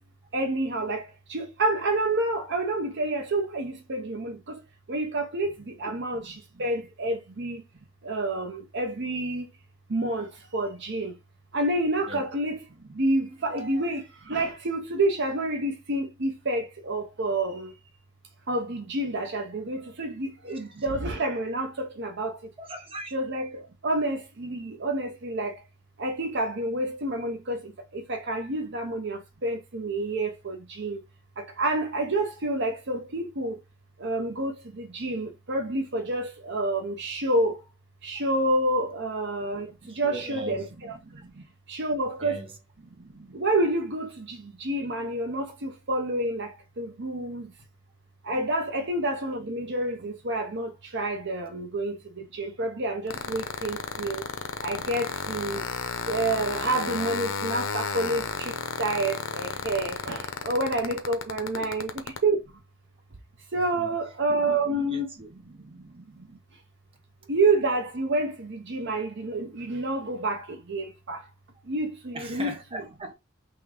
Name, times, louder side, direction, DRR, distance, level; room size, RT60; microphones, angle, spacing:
voice 1, 0.3-1.0 1.3-4.3 4.9-5.5 5.8-6.2 6.6-7.6 8.1-9.4 9.9-10.3 10.5-11.1 11.5-12.6 13.0-14.0 14.3-17.7 18.5-21.7 22.0-22.3 23.1-23.5 23.8-25.5 26.0-27.6 28.1-31.0 31.6-33.5 34.0-34.5 34.9-37.5 38.0-39.7 40.0-40.9 41.7-42.4 43.3-46.5 46.8-47.4 48.3-52.0 52.4-54.2 54.6-55.6 56.1-58.5 58.8-61.9 62.2-62.4 63.5-65.1 67.3-70.4 70.7-71.2 71.7-72.5, right 2 dB, 55° right, 0.8 m, -28 dB
voice 2, 13.5-13.9 22.6-23.1 39.8-40.7 42.2-42.5 45.5-45.6 61.5-61.7 63.7-64.0 64.7-65.3 72.1-73.1, right 1 dB, 25° right, 1.1 m, -39 dB
sound 1, 53.1-62.2, left 5 dB, 70° left, 0.7 m, -32 dB
3.6 x 3.0 x 4.8 m
head